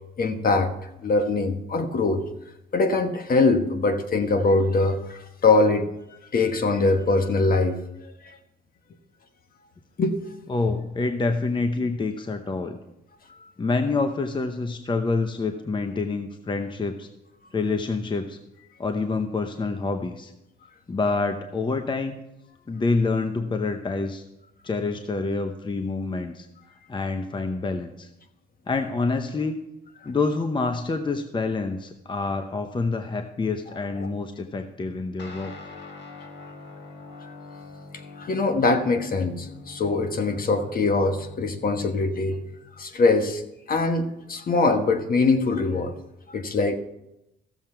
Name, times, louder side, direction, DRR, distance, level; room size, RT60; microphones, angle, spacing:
voice 1, 0.2-0.7 1.0-2.3 2.7-5.9 6.3-8.4 10.0-10.2 13.4-13.5 34.0-34.1 38.2-42.4 42.8-43.4 43.7-45.9 46.3-46.8, left 3 dB, 45° left, 7 dB, 1.2 m, -22 dB
voice 2, 10.5-12.8 13.6-17.1 17.5-18.4 18.8-20.3 20.9-22.2 22.7-24.2 24.6-26.5 26.9-28.1 28.7-29.6 30.0-35.5, left 3 dB, 25° left, 7 dB, 0.8 m, -27 dB
Guitar, 35.2-42.9, left 3 dB, 60° left, 1.6 m, -44 dB
14.5 x 7.3 x 4.5 m, 0.89 s
cardioid pair, 90°, 20 cm